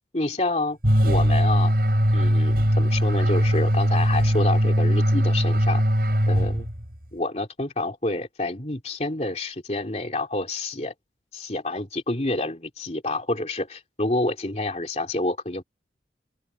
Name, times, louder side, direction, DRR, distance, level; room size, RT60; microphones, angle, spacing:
voice 1, 0.1-0.8 1.0-1.7 2.1-5.8 6.3-6.7 7.1-10.9 11.3-15.6, left 2 dB, 35° left, 3.0 m, -28 dB
sound 1, 0.8-7.0, equal, 55° right, 7.3 m, -20 dB
open air
head